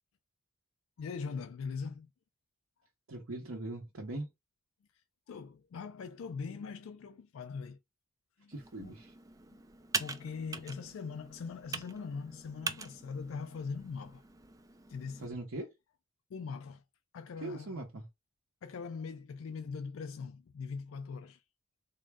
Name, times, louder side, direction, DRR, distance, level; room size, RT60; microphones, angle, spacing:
voice 1, 1.0-2.1 5.3-7.8 8.4-9.0 9.5-9.6 10.0-14.2 14.9-15.3 16.3-16.8 17.1-17.8 18.6-21.4, left 5 dB, 75° left, 0.4 m, -41 dB
voice 2, 3.1-4.3 8.5-9.1 15.2-15.7 17.4-18.1, right 2 dB, 85° right, 0.8 m, -41 dB
Computer keyboard, 8.5-15.3, right 4 dB, 15° right, 0.3 m, -43 dB
3.8 x 2.1 x 3.4 m
head